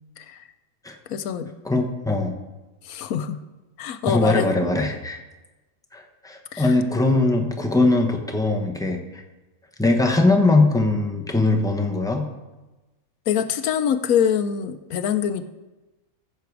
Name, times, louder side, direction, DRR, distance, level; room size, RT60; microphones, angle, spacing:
voice 1, 1.1-1.5 2.8-3.4 3.8-4.5 6.5-6.7 13.3-15.4, left 8 dB, 75° left, 10 dB, 1.1 m, -24 dB
voice 2, 1.6-2.3 4.1-5.2 5.9-9.2 9.8-12.3, left 2 dB, 5° left, 2 dB, 0.9 m, -21 dB
15.0 x 6.8 x 4.7 m, 1.1 s
omnidirectional pair, 1.5 m